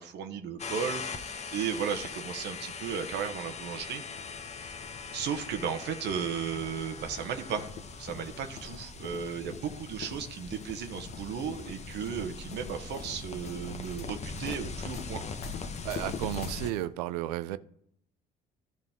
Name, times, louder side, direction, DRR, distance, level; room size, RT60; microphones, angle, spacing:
voice 1, 0.0-4.0 4.6-4.7 5.1-7.7 8.0-15.2, right 7 dB, 60° right, 0.9 m, -35 dB
sound 1, 0.6-16.7, left 4 dB, 35° left, 1.0 m, -41 dB
sound 2, 4.2-16.8, left 5 dB, 50° left, 1.2 m, -46 dB
voice 2, 15.8-17.6, right 14 dB, 80° right, 0.4 m, -33 dB
13.5 x 5.2 x 3.5 m
hypercardioid pair, 55°, 20 cm